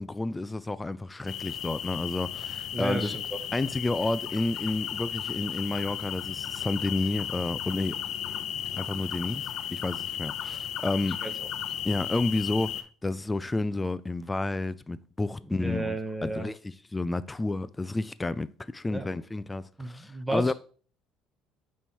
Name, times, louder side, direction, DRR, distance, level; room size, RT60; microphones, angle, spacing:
voice 1, 0.0-3.2 3.5-8.0 8.8-11.2 11.8-20.5, left 2 dB, 15° left, 0.3 m, -31 dB
sound 1, 1.3-12.8, left 10 dB, 55° left, 0.6 m, -35 dB
voice 2, 2.7-3.4 8.9-9.0 11.2-11.3 15.6-16.5 18.9-19.2 19.8-20.5, right 1 dB, 10° right, 1.1 m, -33 dB
8.9 x 3.2 x 4.4 m
cardioid pair, 115°, 0 cm